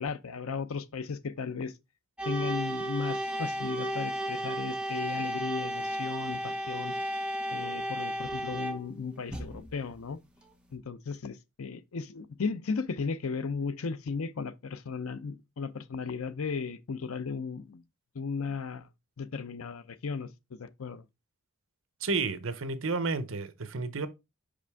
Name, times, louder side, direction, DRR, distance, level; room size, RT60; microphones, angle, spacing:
voice 1, 0.0-1.7 2.2-6.9 7.5-10.2 10.7-17.8 18.1-18.9 19.2-21.0, left 5 dB, 75° left, 0.6 m, -35 dB
sound 1, 2.2-10.1, equal, 5° right, 0.9 m, -34 dB
voice 2, 22.0-24.1, right 4 dB, 65° right, 0.7 m, -31 dB
5.4 x 5.1 x 3.4 m
head